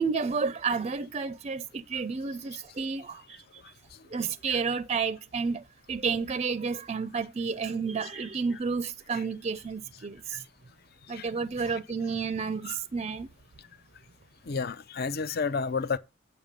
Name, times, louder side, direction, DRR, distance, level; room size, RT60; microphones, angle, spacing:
voice 1, 0.0-3.4 4.1-10.4 11.1-13.3, right 5 dB, 35° right, 0.5 m, -31 dB
voice 2, 14.5-16.0, left 5 dB, 55° left, 0.7 m, -30 dB
9.0 x 6.9 x 5.2 m
head